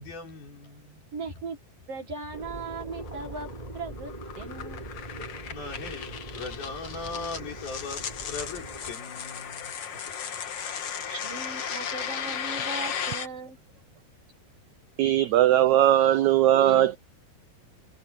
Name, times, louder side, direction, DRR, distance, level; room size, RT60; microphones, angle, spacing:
voice 1, 0.0-1.2 5.5-10.4, left 4 dB, 80° left, 7.4 m, -40 dB
voice 2, 1.1-1.6 1.9-3.5 3.7-4.8 11.1-13.6, right 4 dB, 50° right, 2.5 m, -38 dB
sound 1, 2.3-8.9, right 1 dB, 10° right, 4.9 m, -41 dB
sound 2, 2.5-13.3, left 8 dB, 50° left, 2.1 m, -36 dB
voice 3, 15.0-17.0, right 12 dB, 85° right, 1.6 m, -19 dB
omnidirectional pair, 4.2 m